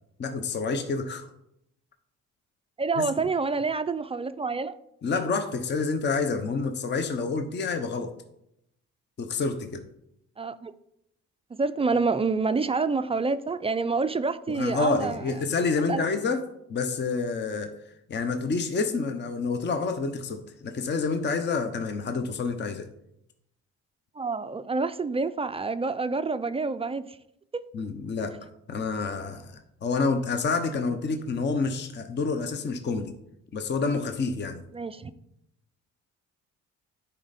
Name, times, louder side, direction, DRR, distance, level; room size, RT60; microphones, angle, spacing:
voice 1, 0.2-1.3 3.0-3.1 5.0-8.1 9.2-9.8 14.5-16.4 16.7-17.7 18.1-22.9 27.7-33.1 33.5-34.6, left 4 dB, 35° left, 7 dB, 0.7 m, -28 dB
voice 2, 2.8-4.8 10.4-10.7 11.6-15.2 15.9-16.0 24.2-27.2 27.5-27.7 34.7-35.1, right 4 dB, 20° right, 12 dB, 0.3 m, -27 dB
9.7 x 4.4 x 4.1 m, 0.80 s
cardioid pair, 90°, 30 cm